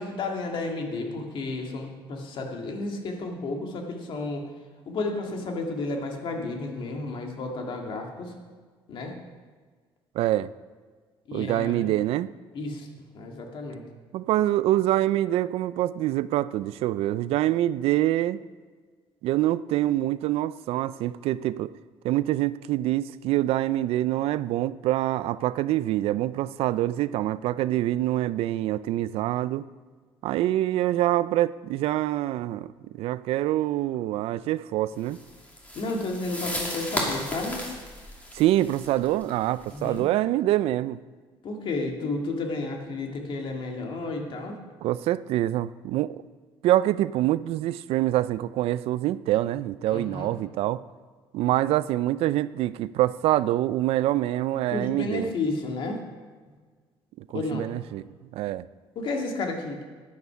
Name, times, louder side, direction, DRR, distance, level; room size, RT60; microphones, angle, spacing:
voice 1, 0.0-4.5 4.9-8.3 8.9-9.2 11.3-11.9 12.5-12.9 13.1-13.8 35.8-37.6 39.7-40.0 41.4-44.6 49.9-50.3 54.7-56.0 57.3-57.7 59.0-59.8, left 3 dB, 60° left, 2 dB, 2.0 m, -32 dB
voice 2, 10.1-10.5 11.3-12.3 14.1-18.4 19.2-21.7 22.0-29.6 30.2-35.2 38.3-41.0 44.8-46.2 46.6-50.8 51.3-55.3 57.2-58.0 58.3-58.7, right 14 dB, 85° right, 17 dB, 0.4 m, -25 dB
sound 1, 35.1-40.0, equal, 15° left, 2.5 m, -35 dB
10.5 x 9.5 x 5.7 m, 1.5 s
cardioid pair, 125°, 10 cm